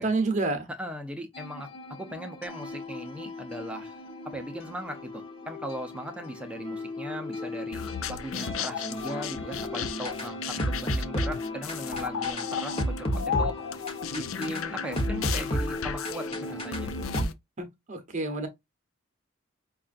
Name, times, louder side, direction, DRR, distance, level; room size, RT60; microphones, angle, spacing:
voice 1, 0.0-0.7 17.6-18.5, right 3 dB, 35° right, 0.8 m, -28 dB
voice 2, 0.7-4.0 4.2-7.8 8.1-13.1 13.4-13.6 14.1-16.9, equal, 5° right, 0.5 m, -38 dB
sound 1, 1.3-17.2, equal, 25° left, 1.0 m, -34 dB
sound 2, 7.7-17.3, left 7 dB, 80° left, 0.5 m, -35 dB
5.4 x 2.4 x 2.4 m
head